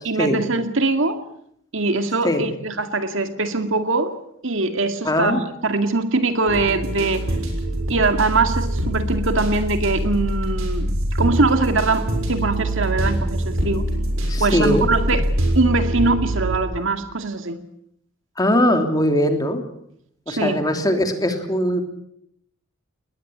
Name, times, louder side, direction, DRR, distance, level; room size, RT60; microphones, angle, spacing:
voice 1, 0.0-1.2 1.7-4.1 4.4-7.4 7.9-13.9 14.4-15.3 15.5-17.6 20.3-20.6, right 3 dB, 65° right, 7 dB, 2.2 m, -22 dB
voice 2, 5.0-5.4 14.3-15.2 18.4-19.6 20.3-21.8, equal, 20° left, 5 dB, 3.0 m, -20 dB
sound 1, 6.5-16.6, right 1 dB, 80° right, 6.5 m, -24 dB
21.0 x 20.0 x 8.7 m, 0.72 s
head